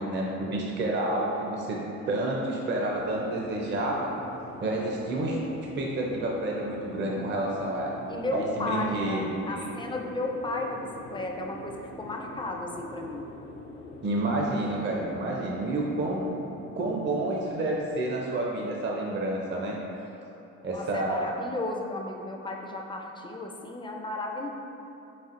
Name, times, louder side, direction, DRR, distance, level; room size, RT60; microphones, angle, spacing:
voice 1, 0.0-1.8 2.1-4.1 4.6-7.9 8.3-9.7 14.0-16.5 16.8-19.8 20.6-21.3, right 1 dB, 35° right, -2 dB, 0.5 m, -29 dB
sound 1, 2.9-17.9, left 1 dB, 60° left, 0.6 m, -44 dB
voice 2, 8.1-13.3 20.7-24.5, left 2 dB, 15° left, 1 dB, 0.4 m, -34 dB
4.2 x 3.8 x 2.5 m, 3.0 s
cardioid pair, 90°, 30 cm